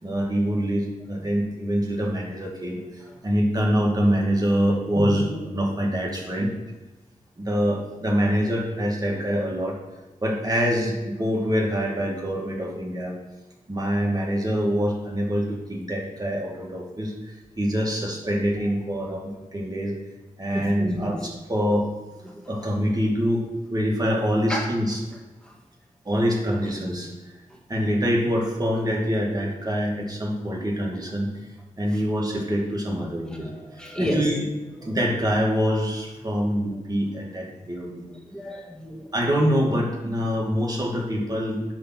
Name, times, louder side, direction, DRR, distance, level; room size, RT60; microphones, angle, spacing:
voice 1, 0.0-6.5 7.4-9.8 10.2-13.2 13.7-17.1 17.6-20.0 20.4-21.9 22.5-23.4 23.7-25.0 26.1-27.1 27.7-31.3 31.8-33.5 34.0-34.4 34.8-38.1 39.1-41.6, equal, 25° right, -2 dB, 2.2 m, -25 dB
voice 2, 20.5-21.2 22.2-22.5 24.5-24.7 33.6-34.3 34.8-34.9 38.3-39.1, equal, 5° left, -1 dB, 2.1 m, -30 dB
10.0 x 4.0 x 6.1 m, 1.2 s
cardioid pair, 60°, 14 cm